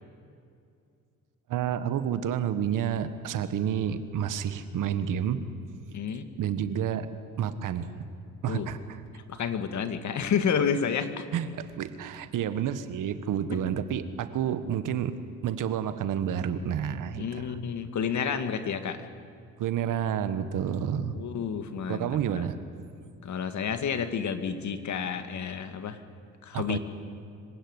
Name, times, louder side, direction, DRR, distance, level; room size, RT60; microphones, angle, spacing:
voice 1, 1.5-5.4 6.4-7.1 7.4-7.9 8.4-8.8 11.3-15.1 15.4-17.5 19.6-21.2 21.9-22.6 26.5-26.8, right 9 dB, 75° right, 11 dB, 1.5 m, -29 dB
voice 2, 5.9-6.3 8.5-8.7 9.3-11.3 13.5-13.6 17.2-19.0 21.1-22.5 23.2-26.0 26.4-26.8, left 7 dB, 60° left, 9 dB, 1.9 m, -30 dB
25.5 x 16.5 x 9.8 m, 2.4 s
cardioid pair, 80°, 32 cm